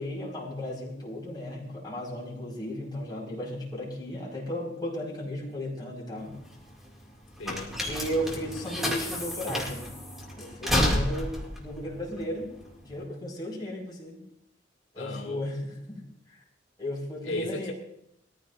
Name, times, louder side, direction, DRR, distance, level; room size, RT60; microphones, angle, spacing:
voice 1, 0.0-6.4 7.9-9.9 10.4-12.5 12.8-14.2 14.9-16.0 16.3-16.4 16.8-17.7, equal, 25° left, -5 dB, 5.0 m, -35 dB
sound 1, 6.2-13.0, left 1 dB, ahead, 2.4 m, -31 dB
voice 2, 7.4-7.8 15.0-15.4 17.2-17.7, left 2 dB, 85° left, -2 dB, 2.3 m, -36 dB
21.5 x 14.5 x 2.6 m, 0.79 s
head